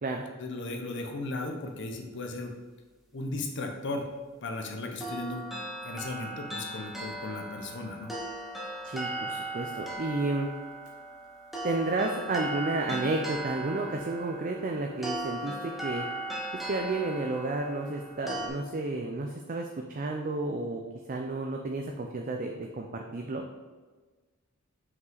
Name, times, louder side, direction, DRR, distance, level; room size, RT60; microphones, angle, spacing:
voice 1, 0.4-2.5 3.1-4.1 4.4-5.4 5.8-8.1, left 2 dB, 55° left, 3 dB, 0.9 m, -36 dB
sound 1, 5.0-18.5, right 1 dB, ahead, 1.0 m, -38 dB
voice 2, 8.8-10.5 11.6-16.0 16.7-20.8 21.1-23.4, right 2 dB, 40° right, 3 dB, 0.5 m, -31 dB
5.7 x 5.3 x 3.9 m, 1.3 s
head